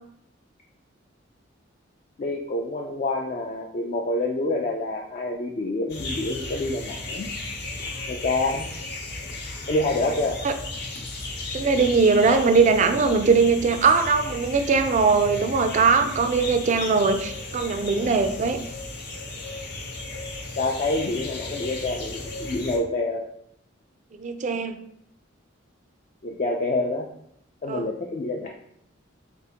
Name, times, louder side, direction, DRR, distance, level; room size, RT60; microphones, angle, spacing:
voice 1, 2.2-7.3 8.1-8.7 9.7-10.4 20.6-23.2 26.2-27.1 27.6-28.5, left 2 dB, 40° left, 0 dB, 0.3 m, -27 dB
sound 1, 5.9-22.8, left 2 dB, 55° left, 0.8 m, -35 dB
voice 2, 11.5-18.6 24.2-24.8 27.7-27.9, right 4 dB, 40° right, 8 dB, 0.3 m, -20 dB
4.1 x 3.4 x 2.8 m, 0.71 s
head